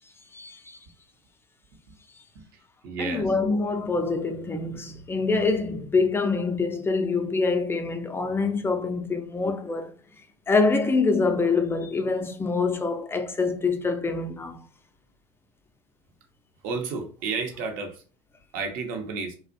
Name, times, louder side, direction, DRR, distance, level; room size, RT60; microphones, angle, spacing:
voice 1, 0.3-0.8 3.0-9.9 10.5-14.6, left 4 dB, 15° left, 0.3 m, -25 dB
voice 2, 2.8-3.3 16.6-18.0 18.5-19.3, right 4 dB, 60° right, 0.7 m, -31 dB
2.4 x 2.0 x 2.5 m
hypercardioid pair, 85°, 17 cm